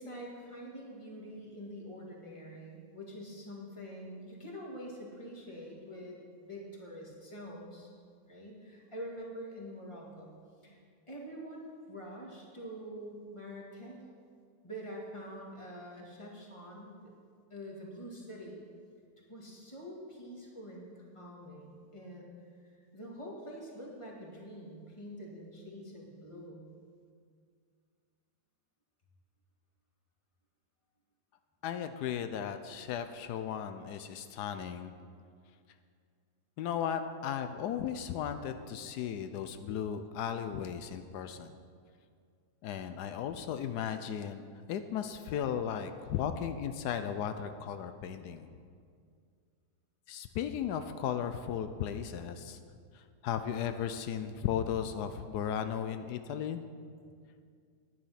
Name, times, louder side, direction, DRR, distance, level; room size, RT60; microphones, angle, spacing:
voice 1, 0.0-7.9 8.3-10.3 10.6-10.8 11.1-14.0 14.6-17.1 17.5-18.6 19.3-22.3 22.7-26.7, equal, 20° left, -3 dB, 2.0 m, -46 dB
voice 2, 31.6-34.9 36.6-41.5 42.6-48.5 50.1-52.6 52.9-56.6, left 8 dB, 85° left, 8 dB, 1.2 m, -36 dB
10.5 x 9.8 x 5.7 m, 2.2 s
omnidirectional pair, 1.7 m